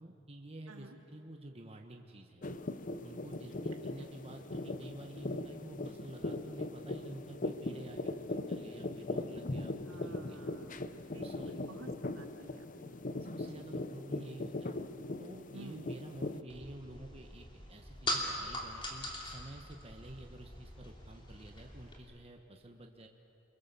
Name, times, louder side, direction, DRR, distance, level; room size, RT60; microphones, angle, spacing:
voice 1, 0.0-2.5 3.0-10.4 11.2-11.5 13.2-14.7 15.2-23.1, right 1 dB, 30° right, 3 dB, 1.3 m, -50 dB
sound 1, 2.4-16.4, left 2 dB, 40° left, 0.8 m, -40 dB
voice 2, 9.9-10.9 11.1-12.9 13.4-13.6 15.5-15.9, right 1 dB, 70° right, 4 dB, 2.3 m, -52 dB
sound 2, 16.5-22.0, left 1 dB, 25° left, 3.0 m, -41 dB
29.0 x 23.0 x 7.0 m, 2.6 s
head